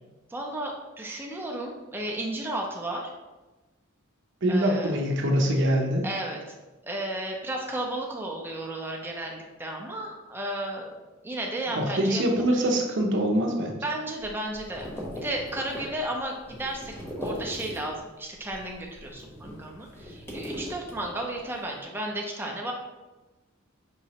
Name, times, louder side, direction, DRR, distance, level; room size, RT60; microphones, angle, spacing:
voice 1, 0.3-3.1 4.5-4.9 6.0-6.5 6.8-10.9 11.2-12.2 12.5-12.7 13.8-14.9 15.2-22.7, right 1 dB, 10° right, 0 dB, 0.5 m, -33 dB
voice 2, 4.4-6.1 11.7-13.8, right 1 dB, 55° right, 2 dB, 0.7 m, -24 dB
sound 1, 14.2-18.1 18.4-21.5, equal, 10° left, 0.9 m, -39 dB
5.4 x 3.0 x 2.8 m, 1.1 s
head